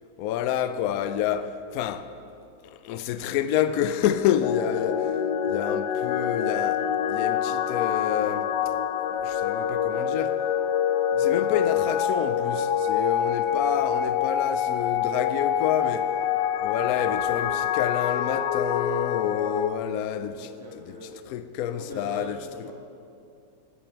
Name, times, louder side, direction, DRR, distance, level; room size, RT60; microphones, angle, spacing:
voice 1, 0.2-2.1 2.6-8.5 9.1-10.4 11.2-16.1 16.6-21.0 21.3-22.4, left 9 dB, 90° left, 0.7 m, -28 dB
sound 1, 4.4-19.7, left 9 dB, 70° left, 1.1 m, -26 dB
voice 2, 11.1-11.4 20.3-21.2 21.8-22.7, left 2 dB, 15° left, 1.1 m, -41 dB
12.5 x 9.7 x 5.9 m
omnidirectional pair, 2.1 m